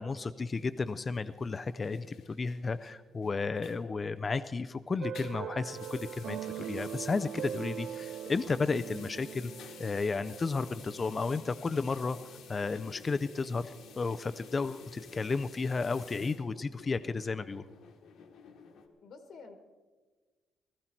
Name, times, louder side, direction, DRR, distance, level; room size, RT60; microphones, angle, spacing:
voice 1, 0.0-9.5 9.8-12.2 12.5-17.6, left 4 dB, 25° left, 12 dB, 0.4 m, -33 dB
sound 1, 0.5-4.7 5.0-18.9, left 7 dB, 75° left, 1.5 m, -53 dB
sound 2, 5.0-14.2, right 10 dB, 75° right, 0.4 m, -43 dB
voice 2, 19.0-19.6, left 4 dB, 55° left, 7 dB, 1.4 m, -49 dB
19.5 x 13.5 x 4.4 m, 1.4 s
cardioid pair, 175°, 0 cm